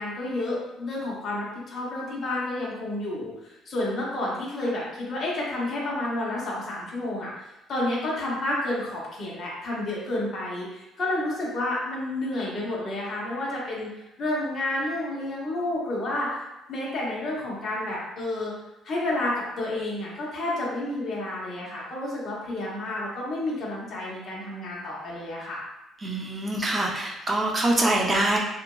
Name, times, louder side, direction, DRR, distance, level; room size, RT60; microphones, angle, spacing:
voice 1, 0.0-7.3 7.7-13.9 14.2-16.4 16.7-18.5 18.8-25.6, left 1 dB, 35° left, -5 dB, 0.7 m, -30 dB
voice 2, 26.0-28.4, right 1 dB, 20° right, -1 dB, 0.4 m, -24 dB
2.9 x 2.4 x 2.2 m, 0.94 s
cardioid pair, 170°, 0 cm